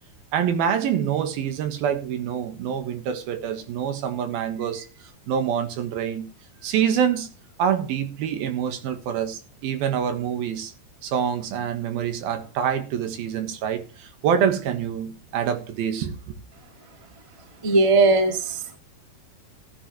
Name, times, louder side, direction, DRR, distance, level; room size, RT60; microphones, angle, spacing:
voice 1, 0.3-4.9 5.3-6.3 6.6-7.3 7.6-10.7 11.0-16.3, right 8 dB, 70° right, 3.2 m, -26 dB
voice 2, 17.6-18.8, right 3 dB, 30° right, 0.6 m, -19 dB
17.0 x 9.9 x 3.1 m
omnidirectional pair, 4.6 m